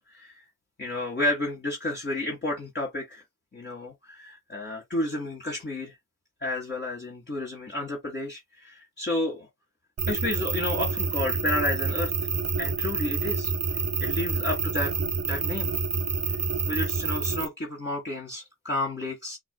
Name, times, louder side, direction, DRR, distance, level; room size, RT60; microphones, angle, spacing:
voice 1, 0.1-0.4 0.8-3.2 3.5-6.0 6.4-9.5 10.1-12.1 12.6-13.5 14.0-15.7 16.7-19.4, left 2 dB, 35° left, 1.8 m, -31 dB
sound 1, 10.0-17.5, right 4 dB, 50° right, 1.0 m, -28 dB
5.8 x 2.9 x 2.2 m
cardioid pair, 75°, 33 cm